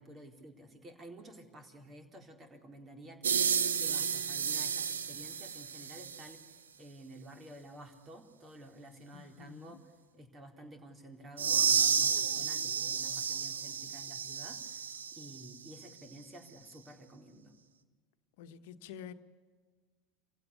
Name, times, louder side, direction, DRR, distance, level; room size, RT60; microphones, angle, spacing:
voice 1, 0.0-9.8 10.1-17.5, right 1 dB, 30° right, 4.0 m, -52 dB
sound 1, 3.2-6.3 11.4-15.4, right 6 dB, 80° right, 1.1 m, -31 dB
voice 2, 9.1-9.8 18.4-19.1, left 8 dB, 65° left, 1.3 m, -48 dB
28.0 x 16.5 x 8.4 m
hypercardioid pair, 80°, 0 cm